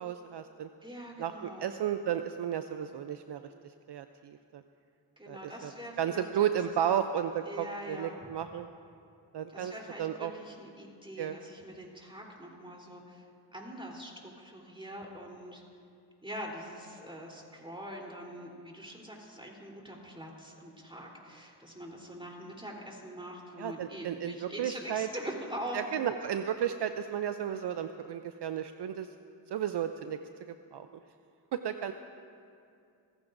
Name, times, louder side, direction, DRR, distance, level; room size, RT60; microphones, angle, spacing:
voice 1, 0.0-0.7 1.2-3.4 3.9-4.6 5.3-5.7 6.0-8.7 9.3-9.7 10.0-10.3 11.2-11.4 23.6-25.1 25.7-29.1 29.5-30.2 30.7-30.9 31.5-31.9, right 9 dB, 65° right, 9 dB, 0.6 m, -33 dB
voice 2, 0.8-1.7 5.2-6.3 6.8-7.0 7.5-8.2 9.5-13.3 13.5-15.6 16.2-26.0, equal, 10° right, -1 dB, 3.5 m, -43 dB
23.5 x 15.0 x 2.6 m, 2.5 s
cardioid pair, 55°, 45 cm